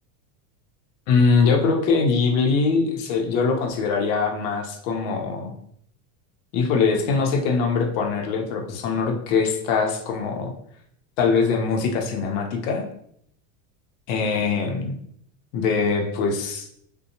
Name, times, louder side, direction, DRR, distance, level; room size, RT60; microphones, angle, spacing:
voice 1, 1.1-5.5 6.5-10.5 11.2-12.8 14.1-15.0 15.5-16.7, left 4 dB, 65° left, 2 dB, 0.6 m, -22 dB
2.6 x 2.2 x 2.7 m, 0.68 s
supercardioid pair, 140°, 43 cm